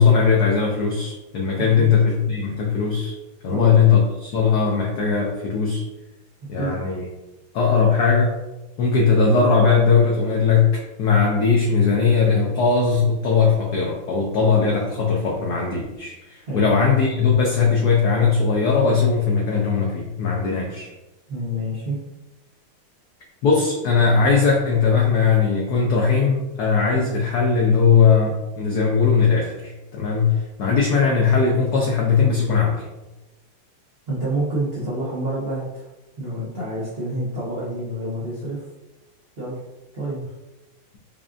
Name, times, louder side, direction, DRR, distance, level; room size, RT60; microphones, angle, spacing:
voice 1, 0.0-3.2 3.4-5.9 6.5-7.1 7.5-8.4 8.8-20.9 23.4-32.8, left 5 dB, 85° left, -1 dB, 0.8 m, -19 dB
voice 2, 1.5-1.9 3.5-3.7 6.6-6.7 16.5-16.6 21.3-22.0 34.1-35.9 36.2-38.6 39.4-39.6 39.9-40.3, right 1 dB, 70° right, -8 dB, 0.5 m, -28 dB
5.3 x 2.4 x 2.4 m, 1.0 s
omnidirectional pair, 2.4 m